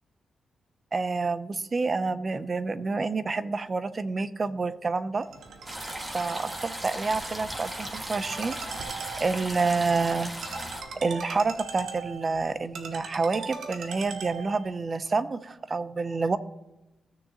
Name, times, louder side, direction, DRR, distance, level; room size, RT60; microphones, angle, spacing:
voice 1, 0.9-5.3 6.1-8.6 9.2-10.3 10.9-16.4, right 4 dB, 40° right, 14 dB, 0.6 m, -28 dB
Ringtone, 5.2-14.8, right 5 dB, 80° right, 1.0 m, -41 dB
sound 1, 5.7-10.8, right 1 dB, 25° right, 1.7 m, -37 dB
15.5 x 6.8 x 2.9 m, 0.96 s
cardioid pair, 80°, 0 cm